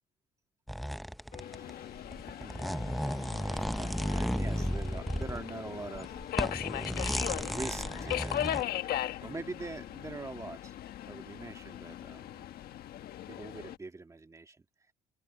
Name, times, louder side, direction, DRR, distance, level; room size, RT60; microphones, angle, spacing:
sound 1, 0.7-1.7 2.0-5.4 5.8-8.6, equal, ahead, 0.6 m, -34 dB
sound 2, 1.3-10.0, left 8 dB, 45° left, 2.6 m, -54 dB
voice 1, 1.3-2.1 2.4-2.7 3.3-6.2 7.3-8.9 9.2-10.8 11.1-12.5 13.3-14.6, right 3 dB, 20° right, 1.8 m, -44 dB
Subway metro underground, 1.4-13.8, left 12 dB, 65° left, 1.4 m, -39 dB
open air
cardioid pair, 110°, 17 cm